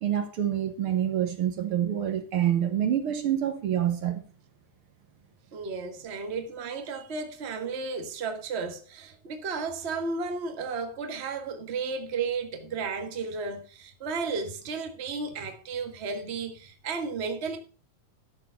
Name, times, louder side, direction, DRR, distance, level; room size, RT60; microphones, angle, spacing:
voice 1, 0.0-4.2, right 10 dB, 55° right, 1.6 m, -27 dB
voice 2, 5.5-17.6, right 4 dB, 85° right, 0.5 m, -33 dB
12.0 x 6.7 x 5.5 m
omnidirectional pair, 3.7 m